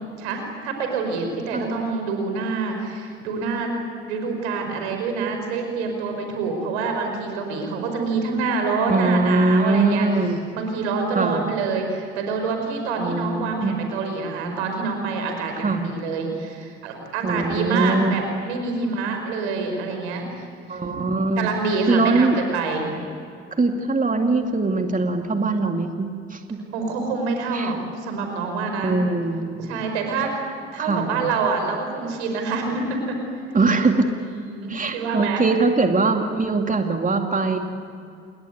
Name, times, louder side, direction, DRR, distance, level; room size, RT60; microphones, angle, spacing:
voice 1, 0.2-3.7 4.1-10.1 10.5-20.8 21.4-22.9 26.7-29.0 29.6-30.3 30.7-33.2 34.2-35.4, right 4 dB, 80° right, 4 dB, 5.3 m, -26 dB
voice 2, 1.5-1.9 8.9-10.4 11.1-11.5 13.0-13.8 15.6-15.8 17.2-18.2 20.7-21.5 21.9-22.4 23.5-26.6 27.5-27.7 28.8-29.8 30.8-31.3 33.5-34.1 34.7-37.6, right 3 dB, 25° right, 4 dB, 2.7 m, -22 dB
28.0 x 21.0 x 9.6 m, 2.5 s
hypercardioid pair, 50°, 33 cm